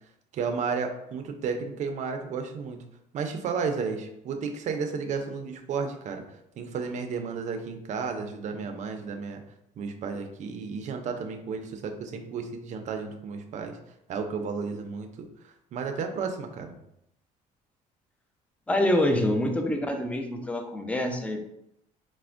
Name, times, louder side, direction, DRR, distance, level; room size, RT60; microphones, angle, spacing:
voice 1, 0.3-2.8 3.1-6.2 6.6-9.4 9.8-13.8 14.1-16.8, right 5 dB, 50° right, 5 dB, 0.5 m, -33 dB
voice 2, 18.7-21.4, left 1 dB, 10° left, 4 dB, 0.4 m, -26 dB
4.2 x 2.1 x 2.4 m, 0.80 s
cardioid pair, 110°, 15 cm